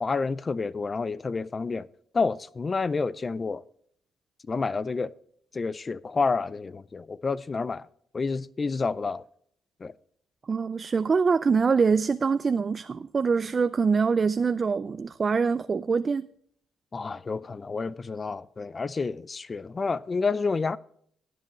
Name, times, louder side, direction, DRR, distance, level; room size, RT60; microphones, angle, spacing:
voice 1, 0.0-1.9 2.1-3.6 4.5-5.1 5.5-7.9 8.1-9.2 9.8-9.9 16.9-20.8, left 4 dB, 30° left, 0.4 m, -29 dB
voice 2, 10.5-16.3, right 5 dB, 35° right, 0.3 m, -24 dB
18.0 x 7.6 x 3.1 m
cardioid pair, 90°, 0 cm